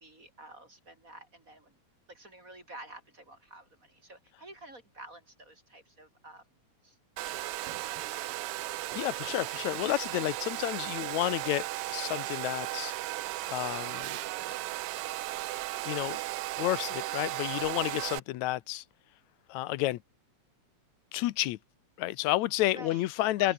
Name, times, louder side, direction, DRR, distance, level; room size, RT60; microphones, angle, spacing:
voice 1, 0.0-1.8 2.1-6.4 6.8-7.0 7.2-8.5 22.6-23.1 23.4-23.5, right 1 dB, 25° right, 3.8 m, -50 dB
Domestic sounds home sounds, 7.2-18.2, right 17 dB, 90° right, 1.2 m, -36 dB
voice 2, 9.0-11.6 11.9-13.0 13.5-14.1 15.8-16.2 16.6-18.9 19.5-20.0 21.1-21.6 22.0-23.5, left 16 dB, 85° left, 2.1 m, -30 dB
omnidirectional pair, 3.3 m